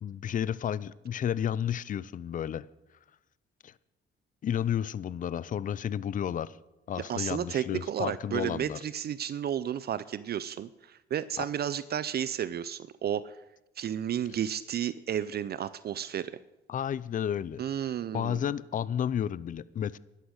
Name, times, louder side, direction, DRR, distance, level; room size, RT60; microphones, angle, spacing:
voice 1, 0.0-2.7 3.6-3.7 4.4-6.6 6.9-8.8 11.4-11.5 16.7-17.6 18.1-20.0, left 9 dB, 40° left, 0.5 m, -32 dB
voice 2, 7.0-13.4 13.8-16.4 17.6-18.4, right 9 dB, 55° right, 0.5 m, -32 dB
11.5 x 11.5 x 6.3 m
cardioid pair, 90°, 20 cm